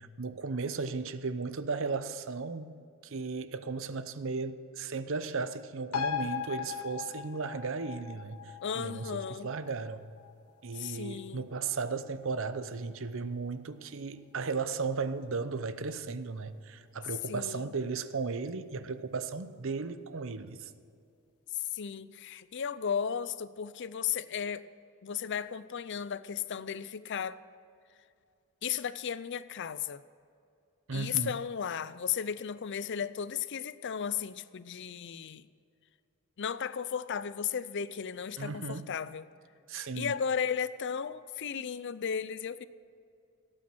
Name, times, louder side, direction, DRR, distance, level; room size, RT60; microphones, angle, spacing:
voice 1, 0.0-2.8 3.0-10.0 10.6-20.7 30.9-31.4 38.4-38.9 39.7-40.2, right 4 dB, 60° right, 12 dB, 0.7 m, -35 dB
sound 1, 5.9-12.9 13.2-13.3, left 7 dB, 90° left, 1.1 m, -40 dB
voice 2, 8.6-9.5 10.7-11.5 17.3-17.7 21.6-24.6 25.0-27.4 28.6-30.0 30.9-35.5 36.4-39.3 39.8-42.7, left 7 dB, 55° left, 16 dB, 0.5 m, -35 dB
16.5 x 8.9 x 6.2 m, 2.5 s
head